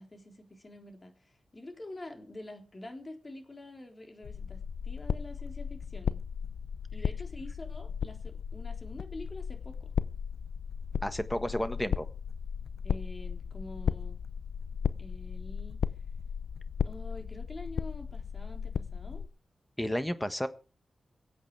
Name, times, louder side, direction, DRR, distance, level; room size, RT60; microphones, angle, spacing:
voice 1, 0.0-6.2 6.9-9.9 12.8-14.2 15.0-15.8 16.8-19.3, left 1 dB, 30° left, 5 dB, 3.5 m, -46 dB
sound 1, 4.2-19.3, left 7 dB, 90° left, 0.6 m, -35 dB
voice 2, 11.0-12.1 19.8-20.5, equal, 10° left, 11 dB, 1.5 m, -31 dB
24.0 x 8.2 x 4.8 m, 0.36 s
wide cardioid pair, 100°, 0 cm